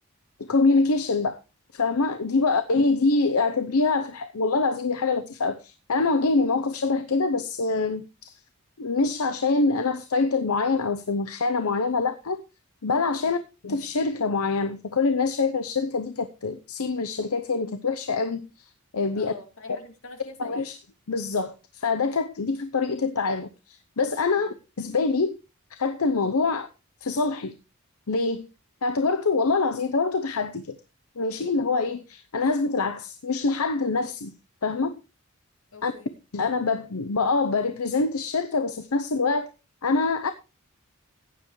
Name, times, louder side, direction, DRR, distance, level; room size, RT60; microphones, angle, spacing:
voice 1, 0.5-1.4 1.7-8.4 8.8-12.4 12.8-13.4 13.6-18.5 18.9-19.3 20.4-20.7 21.1-25.4 25.7-26.7 27.0-27.5 28.1-28.5 28.8-30.8 31.2-34.3 34.6-35.0 35.8-35.9 36.3-39.5 39.8-40.3, left 3 dB, 85° left, 0.8 m, -25 dB
voice 2, 19.1-20.6 24.4-24.6 35.7-36.1, left 3 dB, 70° left, 2.6 m, -45 dB
15.5 x 9.5 x 3.2 m
head